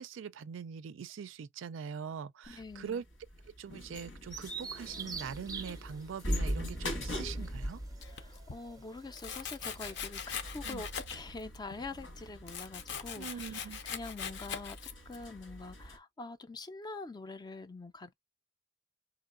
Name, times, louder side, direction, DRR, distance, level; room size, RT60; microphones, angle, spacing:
voice 1, 0.0-3.0 3.6-7.8 10.6-10.8 13.2-13.8, right 7 dB, 80° right, 0.4 m, -42 dB
sound 1, 2.4-16.0, equal, 90° left, 1.6 m, -42 dB
voice 2, 2.5-3.0 8.0-14.8 15.1-18.1, left 3 dB, 20° left, 0.4 m, -45 dB
Bird vocalization bird call bird song, 4.3-10.0, right 5 dB, 20° right, 0.6 m, -47 dB
Domestic sounds home sounds, 8.0-8.6 9.2-11.4 11.7-15.2, left 7 dB, 65° left, 0.6 m, -42 dB
4.5 x 2.9 x 2.4 m
head